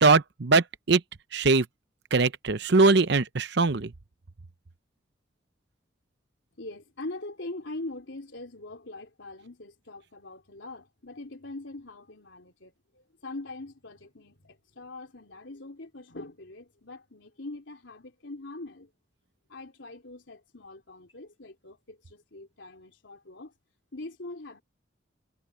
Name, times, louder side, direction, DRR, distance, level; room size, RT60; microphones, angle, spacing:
voice 1, 0.0-1.0 1.3-1.7 2.1-3.9, right 3 dB, 60° right, 0.8 m, -21 dB
voice 2, 6.6-18.9 19.5-23.5 23.9-24.6, left 2 dB, 75° left, 3.4 m, -42 dB
head